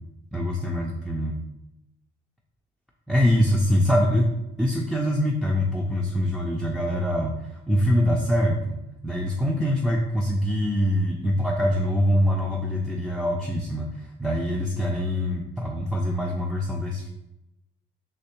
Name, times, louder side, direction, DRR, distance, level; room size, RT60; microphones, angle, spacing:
voice 1, 0.3-1.4 3.1-8.8 9.0-17.1, equal, ahead, -1 dB, 0.4 m, -24 dB
3.3 x 2.9 x 2.9 m, 0.89 s
cardioid pair, 90°, 20 cm